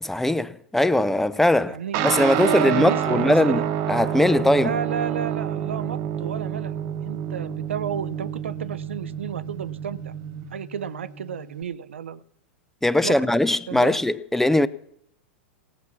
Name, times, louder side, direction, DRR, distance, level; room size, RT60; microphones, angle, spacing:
voice 1, 0.0-4.8 12.8-14.7, left 1 dB, 5° left, 0.5 m, -21 dB
voice 2, 1.7-3.7 4.6-10.1 10.5-12.2 13.0-13.2 13.7-14.0, right 7 dB, 80° right, 0.6 m, -32 dB
Guitar, 1.9-11.6, right 10 dB, 45° right, 1.0 m, -28 dB
16.5 x 7.2 x 7.2 m
hypercardioid pair, 105°, 7 cm